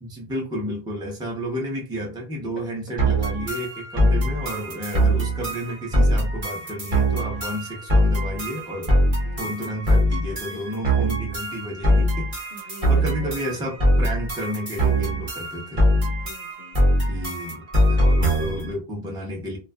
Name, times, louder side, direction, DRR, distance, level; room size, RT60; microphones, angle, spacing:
voice 1, 0.0-8.9 9.4-15.8 17.1-19.6, equal, 5° right, -1 dB, 0.6 m, -32 dB
sound 1, 3.0-18.7, equal, 40° right, 0.8 m, -22 dB
voice 2, 9.0-9.6 10.5-10.6 12.5-13.5 15.9-16.8, left 5 dB, 70° left, 4 dB, 0.8 m, -44 dB
2.5 x 2.4 x 2.3 m, 0.32 s
omnidirectional pair, 1.0 m